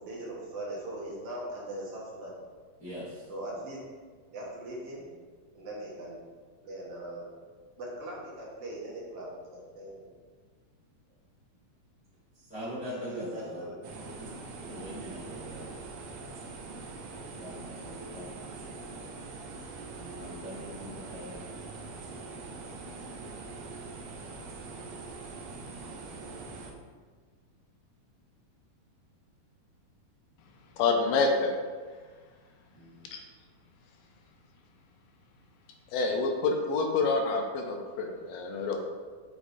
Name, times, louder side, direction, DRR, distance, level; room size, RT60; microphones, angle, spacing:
voice 1, 0.0-2.3 3.3-3.8 4.3-5.1 5.5-6.2 6.6-7.3 7.8-10.1 12.9-13.8, right 1 dB, 60° right, -4 dB, 1.8 m, -40 dB
voice 2, 2.8-3.3 12.3-13.6 14.0-14.3 14.6-15.7 17.4-18.3 19.9-21.5 32.7-33.1, equal, 35° left, -11 dB, 1.6 m, -42 dB
sound 1, 13.8-26.7, right 3 dB, 75° right, 2.3 m, -43 dB
voice 3, 30.8-31.5 33.1-33.2 35.9-38.8, left 3 dB, 80° left, 3 dB, 2.2 m, -27 dB
8.2 x 5.1 x 2.7 m, 1.5 s
omnidirectional pair, 4.1 m